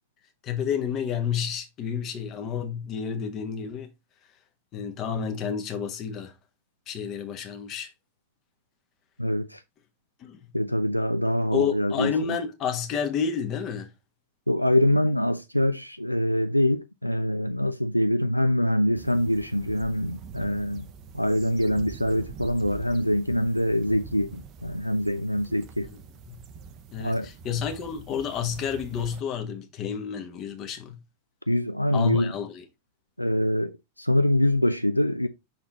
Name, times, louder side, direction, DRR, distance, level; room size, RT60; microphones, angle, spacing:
voice 1, 0.4-3.9 4.7-6.3 6.9-7.9 10.2-10.4 11.5-13.9 25.8-26.4 26.9-31.0 31.9-32.6, left 7 dB, 35° left, 1.3 m, -30 dB
voice 2, 9.2-9.6 10.5-12.1 14.5-20.8 21.1-25.9 27.0-27.3 31.5-32.3 33.2-35.3, left 1 dB, 90° left, 0.4 m, -24 dB
sound 1, 18.9-29.2, right 5 dB, 35° right, 0.6 m, -44 dB
6.0 x 4.1 x 4.0 m
figure-of-eight pair, 90°, 0 cm